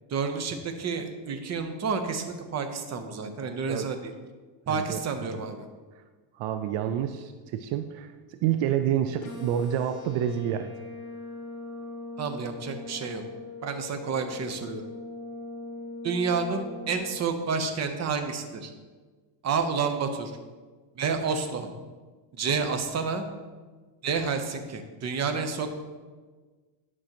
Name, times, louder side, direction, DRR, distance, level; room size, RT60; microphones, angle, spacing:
voice 1, 0.1-4.1 4.7-5.6 12.2-13.2 13.6-14.8 16.0-18.7 19.4-20.3 21.0-21.7 22.3-23.2 24.0-25.8, right 5 dB, 35° right, 7 dB, 0.9 m, -29 dB
voice 2, 4.7-5.4 6.3-10.7, right 10 dB, 70° right, 9 dB, 0.6 m, -29 dB
sound 1, 9.2-17.2, left 3 dB, 40° left, 1.5 m, -40 dB
10.5 x 6.2 x 2.9 m, 1.4 s
cardioid pair, 115°, 47 cm